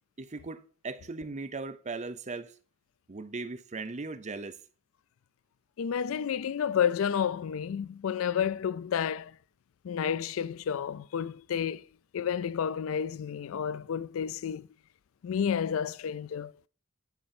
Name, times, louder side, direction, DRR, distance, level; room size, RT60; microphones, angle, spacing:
voice 1, 0.2-2.5 3.1-4.6, right 3 dB, 35° right, 0.6 m, -38 dB
voice 2, 5.8-9.4 9.8-11.9 12.1-14.7 15.2-16.5, left 8 dB, 75° left, 0.4 m, -30 dB
10.5 x 5.0 x 4.3 m
head